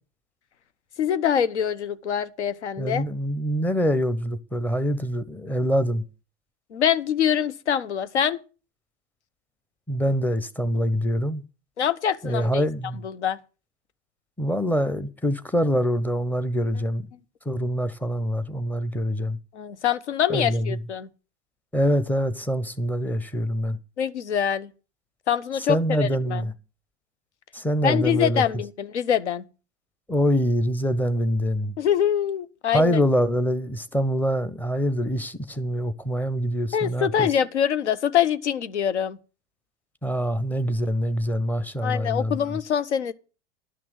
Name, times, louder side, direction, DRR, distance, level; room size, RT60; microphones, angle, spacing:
voice 1, 1.0-3.0 6.7-8.4 11.8-12.6 13.0-13.4 19.5-21.1 24.0-24.7 25.3-26.4 27.8-29.4 31.8-33.0 36.7-39.2 41.8-43.1, left 9 dB, 75° left, 0.9 m, -24 dB
voice 2, 2.8-6.0 9.9-11.4 12.2-13.0 14.4-17.1 17.5-19.4 20.3-20.8 21.7-23.8 25.7-26.5 27.5-28.4 30.1-31.7 32.7-37.3 40.0-42.6, equal, 5° left, 0.9 m, -25 dB
11.5 x 6.1 x 7.9 m
figure-of-eight pair, 80°, 35 cm